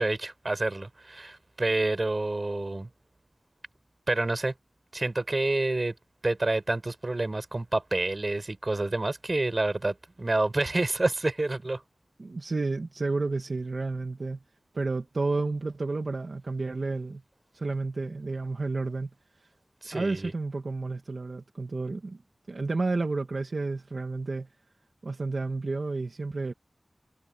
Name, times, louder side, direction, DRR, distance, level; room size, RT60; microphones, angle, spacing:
voice 1, 0.0-2.9 4.1-4.5 4.9-5.9 6.2-11.8 19.8-20.3, right 2 dB, 45° right, 5.6 m, -28 dB
voice 2, 12.2-14.4 14.7-17.2 17.5-19.1 19.4-19.5 19.9-22.2 22.5-24.5 25.0-26.5, right 3 dB, 65° right, 2.2 m, -31 dB
wide cardioid pair, 55°, 0 cm